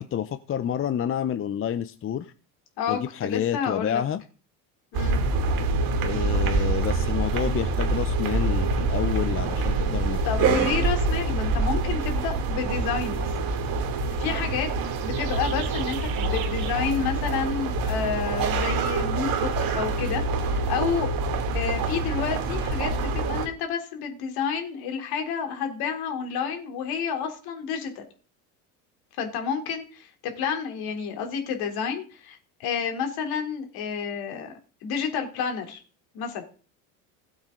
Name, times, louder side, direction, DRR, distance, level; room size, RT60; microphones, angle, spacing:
voice 1, 0.0-2.3 2.9-4.2 6.0-10.7, left 9 dB, 30° left, 13 dB, 0.8 m, -29 dB
voice 2, 2.8-4.0 4.9-5.2 10.2-13.3 14.2-14.7 15.0-21.1 21.5-28.0 29.2-34.5 34.8-35.8 36.1-36.4, left 6 dB, 60° left, 5 dB, 3.5 m, -30 dB
sound 1, 4.9-23.5, right 3 dB, 55° right, 2.9 m, -26 dB
sound 2, 13.5-18.8, right 9 dB, 90° right, 3.3 m, -44 dB
17.0 x 8.0 x 3.9 m, 0.37 s
hypercardioid pair, 90°, 41 cm